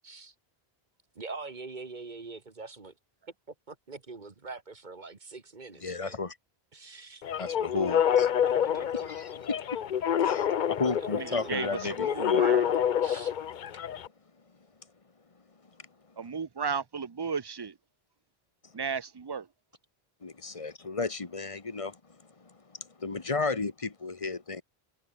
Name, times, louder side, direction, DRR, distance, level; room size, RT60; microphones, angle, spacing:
voice 1, 0.0-0.3 1.1-2.9 3.7-6.1 6.7-7.2 8.4-9.1 11.0-11.7 13.0-13.3, right 3 dB, 45° right, 1.7 m, -44 dB
voice 2, 5.8-6.4 7.4-8.3 8.9-12.9 15.8-15.9 20.2-24.6, left 4 dB, 30° left, 1.5 m, -34 dB
sound 1, 7.2-14.1, left 9 dB, 55° left, 0.7 m, -27 dB
voice 3, 11.2-11.7 12.0-12.7 16.2-17.7 18.7-19.5, right 6 dB, 30° right, 0.5 m, -34 dB
omnidirectional pair, 1.0 m